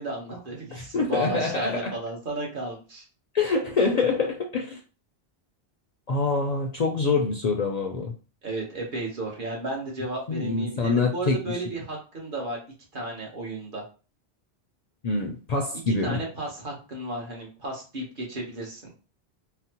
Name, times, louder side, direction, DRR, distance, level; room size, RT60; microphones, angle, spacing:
voice 1, 0.0-3.0 8.4-12.6 12.9-13.8 15.9-18.9, right 1 dB, 55° right, -1 dB, 1.1 m, -33 dB
voice 2, 0.7-1.9 3.3-4.8 6.1-8.1 10.3-11.8 15.0-16.2, left 4 dB, 55° left, 1 dB, 0.5 m, -25 dB
3.9 x 2.0 x 2.8 m, 0.34 s
omnidirectional pair, 1.1 m